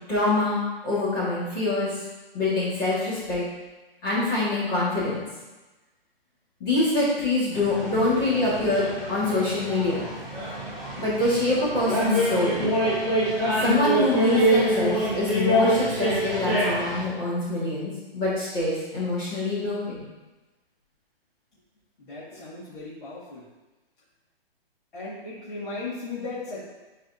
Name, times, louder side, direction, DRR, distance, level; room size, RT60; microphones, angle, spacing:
voice 1, 0.1-1.9 2.3-3.4 4.0-5.2 6.6-10.0 11.0-12.6 13.6-20.0, left 2 dB, 20° left, -9 dB, 1.7 m, -25 dB
sound 1, 7.5-17.0, equal, ahead, 0.9 m, -25 dB
voice 2, 22.0-23.4 24.9-26.6, left 3 dB, 50° left, -10 dB, 2.1 m, -36 dB
9.6 x 4.1 x 2.7 m, 1.1 s
hypercardioid pair, 175°, 31 cm